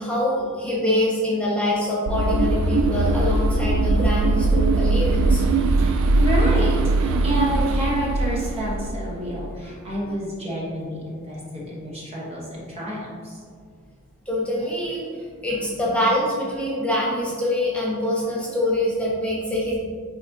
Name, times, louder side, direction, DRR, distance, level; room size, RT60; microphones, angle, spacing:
voice 1, 0.0-6.0 14.3-15.1 15.4-19.7, left 1 dB, 5° left, -6 dB, 1.3 m, -24 dB
sound 1, 2.1-9.5, right 2 dB, 70° right, 0.4 m, -21 dB
voice 2, 5.8-13.4, left 1 dB, 30° right, -5 dB, 1.1 m, -29 dB
10.0 x 3.5 x 2.8 m, 2.1 s
head